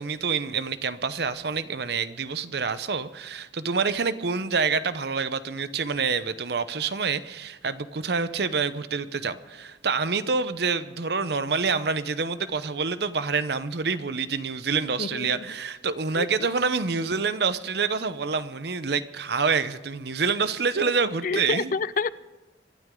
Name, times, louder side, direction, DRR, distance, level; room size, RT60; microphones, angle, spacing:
voice 1, 0.0-21.7, right 5 dB, 60° right, 0.8 m, -27 dB
voice 2, 15.0-15.4 16.2-16.3 20.8-20.9 21.2-22.1, left 4 dB, 45° left, 0.4 m, -28 dB
26.0 x 12.5 x 3.8 m
head